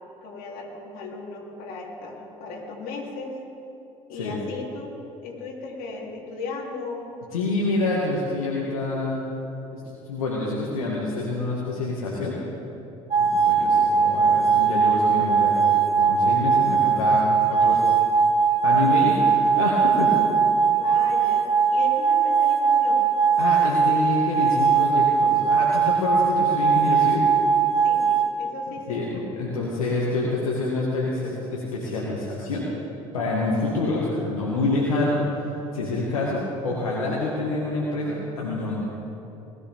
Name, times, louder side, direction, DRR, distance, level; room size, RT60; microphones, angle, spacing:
voice 1, 0.2-3.4 4.1-5.0 5.2-7.0 13.6-13.9 20.8-23.1 27.8-29.3, left 3 dB, 55° left, -2 dB, 3.1 m, -36 dB
voice 2, 7.3-9.2 9.7-9.8 10.1-12.4 13.2-15.7 16.0-17.8 18.6-20.1 23.4-27.3 28.9-32.7 33.1-35.2 35.7-38.9, left 2 dB, 80° left, -4 dB, 1.8 m, -27 dB
sound 1, 13.1-28.3, right 6 dB, 35° right, 1.6 m, -20 dB
20.0 x 13.0 x 3.6 m, 2.9 s
figure-of-eight pair, 60°, 18 cm